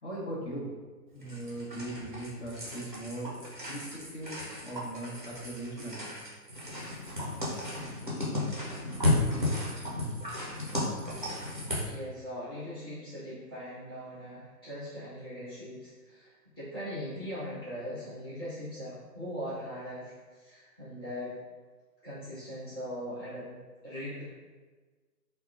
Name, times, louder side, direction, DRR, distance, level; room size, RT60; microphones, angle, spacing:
voice 1, 0.0-0.7 1.1-3.3 3.7-6.0, right 1 dB, 45° left, -6 dB, 0.9 m, -39 dB
sound 1, 1.2-11.9, left 1 dB, 35° right, 0.4 m, -34 dB
voice 2, 11.8-21.3 22.0-23.6 23.8-24.2, equal, 15° left, -13 dB, 0.7 m, -40 dB
3.5 x 2.1 x 2.4 m, 1.4 s
hypercardioid pair, 170°, 47 cm